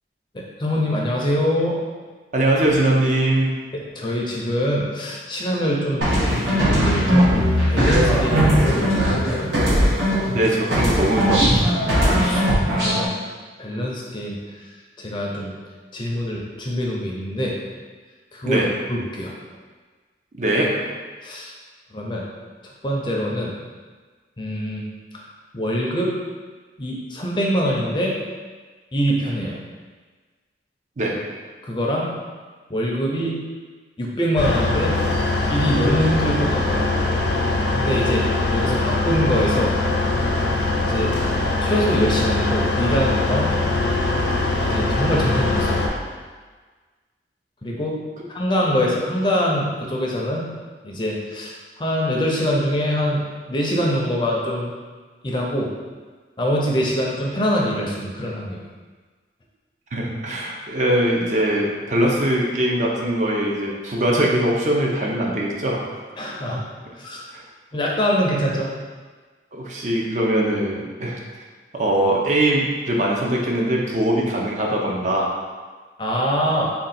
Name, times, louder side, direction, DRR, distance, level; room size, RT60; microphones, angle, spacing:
voice 1, 0.3-1.8 3.7-7.3 7.7-9.5 12.0-13.1 13.6-14.4 15.0-15.5 15.9-17.6 18.3-18.6 18.9-19.3 21.2-21.5 21.9-22.2 22.8-23.5 24.4-24.9 25.1-25.2 25.5-26.1 26.8-28.2 28.9-29.6 31.6-32.1 32.7-33.4 34.0-35.0 35.5-36.9 37.7-39.7 40.8-41.2 41.6-43.5 44.6-45.8 47.6-48.0 48.3-50.5 50.8-54.7 55.2-55.7 56.4-58.6 66.2-66.6 67.0-67.2 67.7-68.7 76.0-76.7, equal, 25° left, -2 dB, 0.5 m, -24 dB
voice 2, 2.3-3.5 10.2-11.7 18.4-18.7 20.4-20.7 31.0-31.2 59.9-66.0 67.3-67.4 69.5-71.2 71.7-75.3, right 1 dB, 45° right, -2 dB, 0.5 m, -21 dB
sound 1, 6.0-10.4 10.7-13.1, equal, 85° right, 1.1 m, -19 dB
sound 2, 34.4-45.9, left 2 dB, 80° left, 0.6 m, -22 dB
3.7 x 2.2 x 4.1 m, 1.4 s
head